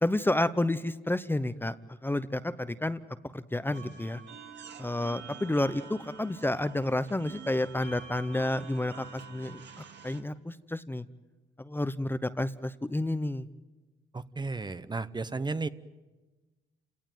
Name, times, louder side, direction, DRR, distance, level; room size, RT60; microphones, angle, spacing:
voice 1, 0.0-1.7 2.0-3.0 3.3-4.2 4.8-11.0 11.6-13.5, left 1 dB, 10° left, 13 dB, 0.8 m, -30 dB
sound 1, 3.7-10.2, right 6 dB, 60° right, 2.2 m, -47 dB
voice 2, 14.1-15.7, right 3 dB, 20° right, 13 dB, 0.8 m, -33 dB
28.5 x 18.5 x 9.3 m, 1.2 s
cardioid pair, 90°, 20 cm